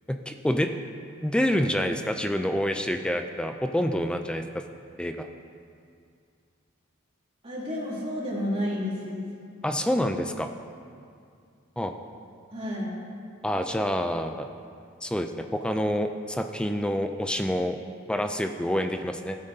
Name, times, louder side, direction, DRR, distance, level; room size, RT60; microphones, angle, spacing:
voice 1, 0.1-0.7 1.2-4.4 5.0-5.3 9.6-10.5 11.8-11.9 13.4-14.5 15.0-17.8 18.1-19.4, equal, 5° left, 6 dB, 0.3 m, -27 dB
voice 2, 7.4-9.3 12.5-13.0, left 1 dB, 30° right, -8 dB, 2.9 m, -31 dB
16.0 x 8.7 x 2.7 m, 2.3 s
head